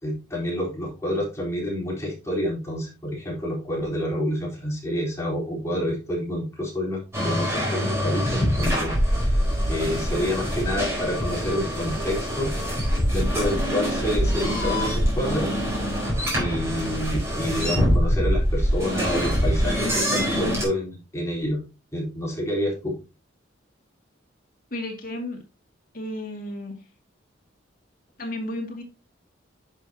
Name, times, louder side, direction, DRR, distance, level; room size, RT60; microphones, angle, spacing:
voice 1, 0.0-9.4 9.7-12.5 13.1-15.5 16.3-21.6 21.9-23.0, left 1 dB, 15° left, -3 dB, 4.0 m, -28 dB
sound 1, 7.1-20.6, equal, 15° right, 4.3 m, -24 dB
voice 2, 24.7-25.4 25.9-26.8 28.2-28.8, left 1 dB, 45° left, 2 dB, 2.4 m, -32 dB
10.5 x 6.4 x 2.9 m, 0.29 s
head